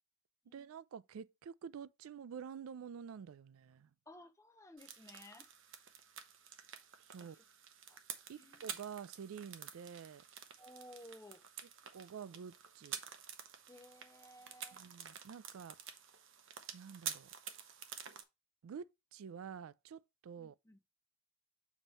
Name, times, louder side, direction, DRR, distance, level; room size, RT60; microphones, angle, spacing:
voice 1, 0.5-3.9 7.0-7.4 8.3-10.2 11.9-13.0 14.7-15.8 16.7-17.3 18.6-20.5, right 7 dB, 90° right, 0.4 m, -49 dB
voice 2, 4.1-5.5 7.2-7.4 7.9-8.0 8.3-8.6 10.6-11.4 11.9-12.3 13.7-14.8 20.4-20.8, left 1 dB, 15° left, 0.6 m, -57 dB
sound 1, 4.8-18.2, right 8 dB, 65° right, 0.8 m, -50 dB
7.2 x 3.0 x 5.4 m
head